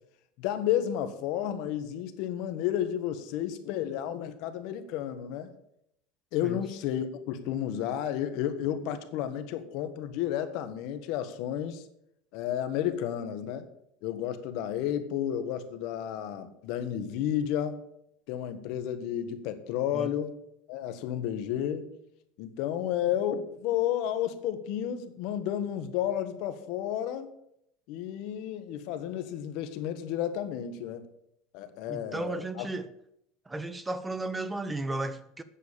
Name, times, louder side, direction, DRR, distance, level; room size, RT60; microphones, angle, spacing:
voice 1, 0.4-5.5 6.3-11.8 12.3-13.6 14.0-17.8 18.3-20.4 20.7-21.9 22.4-27.3 27.9-31.1 31.5-32.7, left 10 dB, 65° left, 1.5 m, -32 dB
voice 2, 31.9-32.9 33.5-35.4, right 2 dB, 10° right, 0.7 m, -34 dB
9.3 x 7.1 x 8.7 m
supercardioid pair, 135°, 0 cm